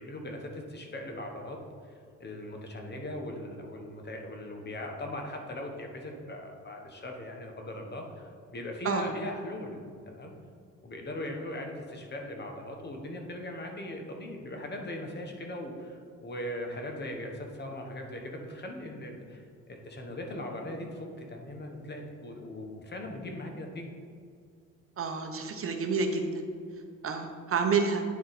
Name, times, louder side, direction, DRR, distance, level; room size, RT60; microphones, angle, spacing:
voice 1, 0.0-1.6 1.8-1.9 2.2-10.3 10.8-23.9, left 1 dB, 35° left, 2 dB, 1.1 m, -39 dB
voice 2, 25.0-26.2 27.0-28.0, right 5 dB, 45° right, 5 dB, 0.8 m, -29 dB
9.3 x 3.9 x 4.1 m, 2.2 s
cardioid pair, 90°, 30 cm